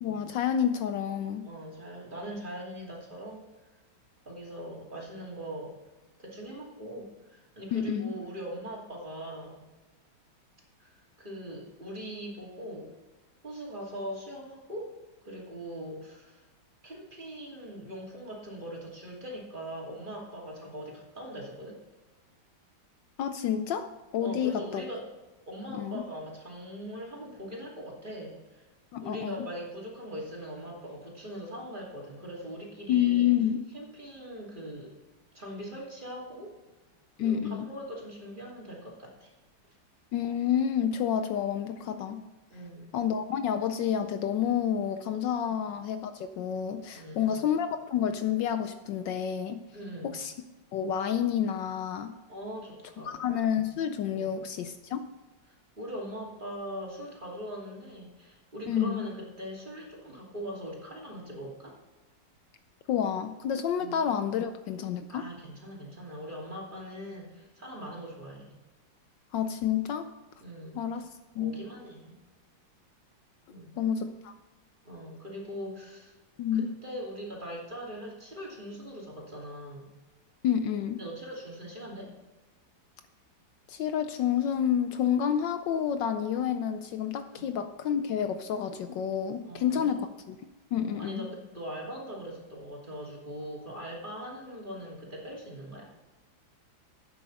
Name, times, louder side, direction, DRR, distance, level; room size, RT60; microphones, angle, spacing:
voice 1, 0.0-1.5 7.7-8.1 23.2-24.8 25.7-26.0 28.9-29.5 32.9-33.6 37.2-37.7 40.1-42.2 42.9-49.6 50.0-50.3 50.7-52.1 53.1-55.0 58.7-59.1 62.9-65.2 69.3-70.1 70.8-71.0 71.4-71.5 73.8-74.3 76.4-76.7 80.4-81.0 83.7-90.4 90.7-91.3, left 9 dB, 75° left, 9 dB, 1.2 m, -29 dB
voice 2, 1.4-3.4 4.2-5.7 6.2-9.6 10.8-12.9 13.4-14.9 15.2-16.5 16.8-21.8 24.2-25.0 25.5-28.6 29.0-33.3 33.7-34.9 35.3-36.5 37.2-39.3 42.5-43.0 45.5-45.6 46.9-47.4 49.7-50.2 52.3-53.2 54.1-54.3 55.5-61.7 63.8-63.9 65.1-68.5 70.4-70.8 71.4-72.1 73.5-73.7 74.8-76.1 76.5-79.9 81.0-82.1 87.3-87.5 89.4-90.0 90.7-95.9, equal, 25° right, -3 dB, 2.9 m, -41 dB
12.0 x 9.1 x 4.0 m, 1.2 s
omnidirectional pair, 2.1 m